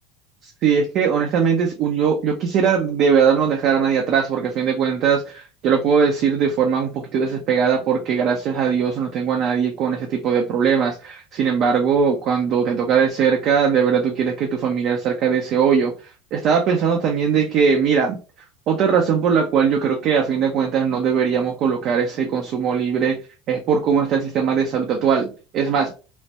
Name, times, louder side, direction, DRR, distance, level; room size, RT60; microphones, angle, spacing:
voice 1, 0.4-15.9 16.3-18.2 18.7-23.2 23.5-25.9, right 6 dB, 55° right, 2 dB, 0.5 m, -20 dB
3.0 x 2.1 x 2.8 m, 0.33 s
supercardioid pair, 105°, 0 cm